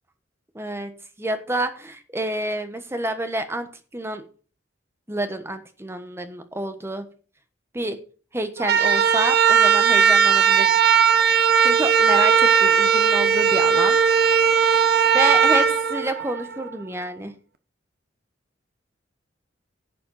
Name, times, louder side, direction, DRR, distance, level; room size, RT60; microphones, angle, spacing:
voice 1, 0.5-0.9 1.2-3.7 3.9-4.2 5.1-7.1 7.7-8.0 8.3-10.7 11.6-14.0 15.1-17.3, right 1 dB, 15° right, 9 dB, 1.3 m, -28 dB
sound 1, 8.6-16.7, right 7 dB, 55° right, 1.1 m, -18 dB
11.5 x 7.7 x 5.7 m, 0.39 s
head